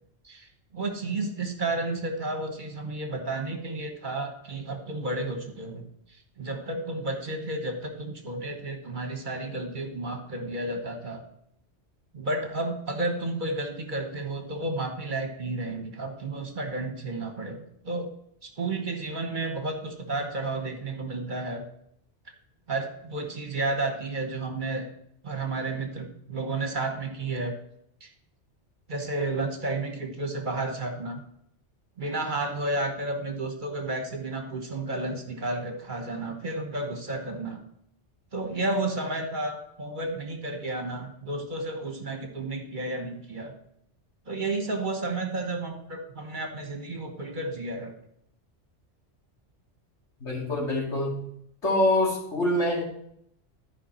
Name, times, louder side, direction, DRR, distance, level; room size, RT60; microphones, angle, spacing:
voice 1, 0.2-5.8 6.4-11.2 12.1-18.1 18.4-21.6 22.7-24.9 25.2-27.5 28.0-28.1 28.9-31.2 32.0-37.6 38.3-43.6 44.3-47.9, right 2 dB, 45° right, 4 dB, 1.2 m, -32 dB
voice 2, 50.2-51.2 51.6-52.8, left 1 dB, 80° left, -2 dB, 2.7 m, -25 dB
13.0 x 5.1 x 4.3 m, 0.73 s
omnidirectional pair, 1.2 m